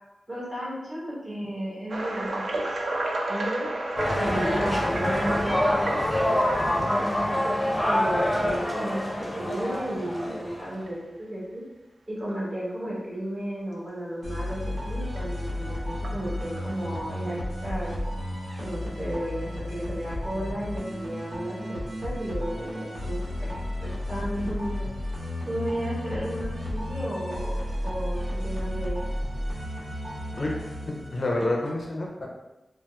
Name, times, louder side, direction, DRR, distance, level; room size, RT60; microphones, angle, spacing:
voice 1, 0.3-2.8 3.3-3.7 4.1-6.0 6.7-11.6 12.1-17.4 17.6-17.9 18.6-24.9 25.5-27.6 27.8-29.0, equal, 30° right, -6 dB, 1.2 m, -33 dB
sound 1, 1.9-8.8 9.4-9.6 10.1-10.2 10.8-10.9 12.3-12.4 15.2-15.3 16.0-16.8, right 2 dB, 65° right, 0.4 m, -33 dB
sound 2, 4.0-10.8, left 1 dB, 10° left, 0.7 m, -26 dB
sound 3, 14.2-31.7, left 1 dB, 85° right, 1.0 m, -33 dB
voice 2, 30.8-32.3, left 2 dB, 50° left, -1 dB, 0.5 m, -28 dB
3.9 x 2.0 x 2.3 m, 1.0 s
wide cardioid pair, 85°, 0 cm